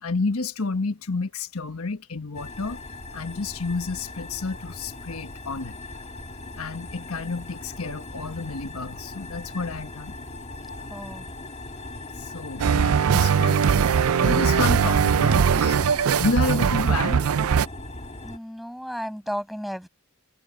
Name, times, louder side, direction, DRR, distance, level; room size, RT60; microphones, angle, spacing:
voice 1, 0.0-2.8 3.1-5.8 6.6-10.2 12.2-13.7 14.2-15.8 16.2-17.2, left 3 dB, 85° left, 1.3 m, -30 dB
sound 1, 2.3-18.4, left 2 dB, 30° left, 2.0 m, -39 dB
voice 2, 10.8-11.3 16.4-16.6 18.2-19.9, equal, ahead, 7.0 m, -34 dB
sound 2, 12.6-17.7, right 7 dB, 80° right, 0.4 m, -20 dB
head